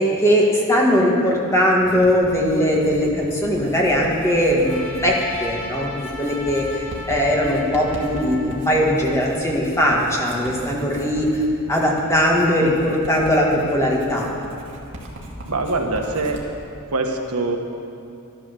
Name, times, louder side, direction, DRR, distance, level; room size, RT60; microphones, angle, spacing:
voice 1, 0.0-11.4 11.7-14.3, equal, 15° left, -3 dB, 1.9 m, -20 dB
Writing, 1.8-16.4, equal, 55° right, 2.1 m, -38 dB
Trumpet, 4.6-9.1, left 2 dB, 65° left, 2.2 m, -36 dB
voice 2, 15.5-16.4 16.9-17.6, right 2 dB, 85° right, 3 dB, 1.4 m, -23 dB
12.5 x 12.5 x 6.9 m, 2.6 s
head